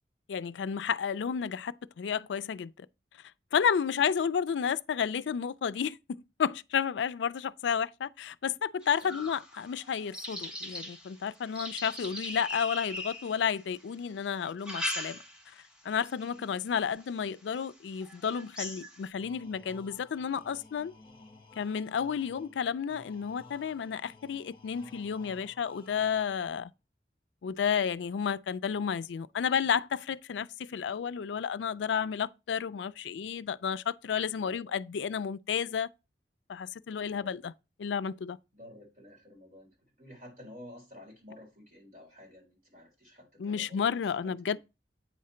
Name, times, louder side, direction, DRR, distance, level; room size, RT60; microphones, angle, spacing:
voice 1, 0.3-2.9 3.5-6.0 6.4-15.2 15.8-20.9 21.6-26.7 27.4-35.9 36.5-37.5 37.8-38.4 43.4-44.6, left 7 dB, 85° left, 0.4 m, -31 dB
sound 1, 8.8-13.8 14.4-15.6 16.0-16.4 17.0-17.1 17.6-17.7 18.0-19.1, left 1 dB, 5° right, 1.1 m, -40 dB
sound 2, 19.2-26.6, left 3 dB, 30° left, 1.5 m, -55 dB
voice 2, 34.4-34.7 36.9-37.5 38.5-39.7 40.0-43.9 44.2-44.6, left 1 dB, 45° right, 3.8 m, -52 dB
8.8 x 3.8 x 4.3 m
head